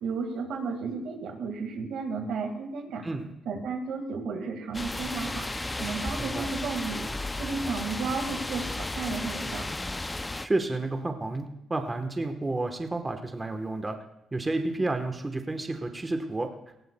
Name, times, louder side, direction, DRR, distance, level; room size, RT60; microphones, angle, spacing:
voice 1, 0.0-3.0 3.5-5.5 5.8-7.0 7.4-9.7, right 4 dB, 80° right, 5 dB, 1.9 m, -33 dB
sound 1, 4.7-10.5, left 2 dB, 15° left, 0.4 m, -34 dB
voice 2, 10.4-14.0 14.3-16.5, right 2 dB, 20° right, 5 dB, 1.2 m, -30 dB
18.0 x 15.5 x 2.3 m, 0.85 s
cardioid pair, 90°, 0 cm